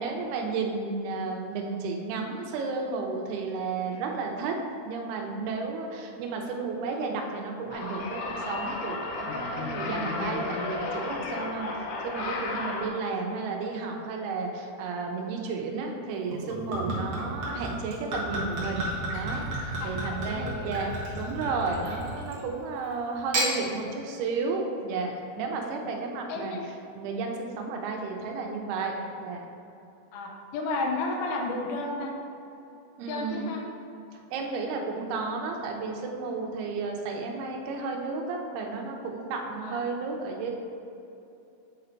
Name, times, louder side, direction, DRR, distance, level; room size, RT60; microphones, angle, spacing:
voice 1, 0.0-4.6 4.9-11.7 12.0-26.6 26.9-29.4 33.0-33.5 34.3-40.5, right 4 dB, 85° right, 1 dB, 2.8 m, -33 dB
sound 1, 7.7-12.9, left 3 dB, 75° left, 2.0 m, -33 dB
Gurgling / Chink clink / Liquid, 16.3-22.5 23.1-23.5, right 1 dB, 60° right, 1.3 m, -32 dB
voice 2, 19.8-20.9 25.8-25.9 26.3-26.7 30.1-32.1 33.1-33.6 39.6-39.8, left 2 dB, 90° left, 0 dB, 1.7 m, -32 dB
8.2 x 3.9 x 4.4 m, 2.8 s
omnidirectional pair, 4.5 m